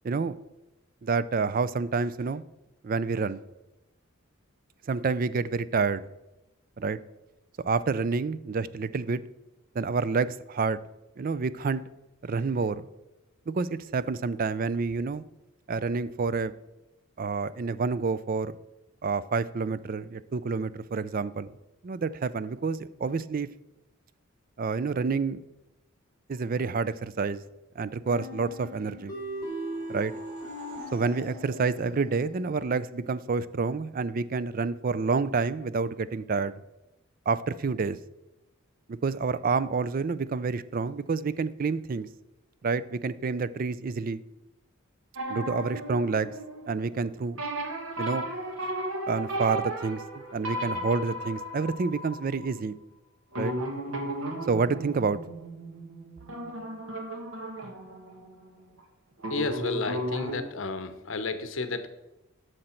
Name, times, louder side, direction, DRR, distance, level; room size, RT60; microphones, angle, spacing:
voice 1, 1.0-2.4 2.8-3.4 4.9-6.1 6.8-7.0 7.6-9.2 9.7-10.8 11.2-11.8 12.2-12.9 13.5-15.2 15.7-16.5 17.2-18.6 19.0-21.5 21.8-23.5 24.6-25.4 26.3-27.4 27.8-29.1 29.9-30.1 30.9-36.5 37.3-38.0 39.0-42.1 42.6-44.2 45.3-46.3 46.7-47.4 48.0-48.3 49.1-50.0 50.3-52.8 53.4-53.5 54.5-55.2, right 4 dB, 40° right, 17 dB, 0.4 m, -28 dB
sound 1, 28.1-32.8, right 1 dB, 15° left, 3.6 m, -39 dB
sound 2, 29.3-32.9, equal, 85° right, 3.0 m, -47 dB
sound 3, 45.2-47.0 47.4-52.6 53.3-58.8 59.2-60.4, right 1 dB, 70° right, 1.6 m, -35 dB
voice 2, 59.3-61.9, left 3 dB, 65° left, 10 dB, 0.9 m, -32 dB
11.5 x 6.5 x 4.4 m, 0.96 s
head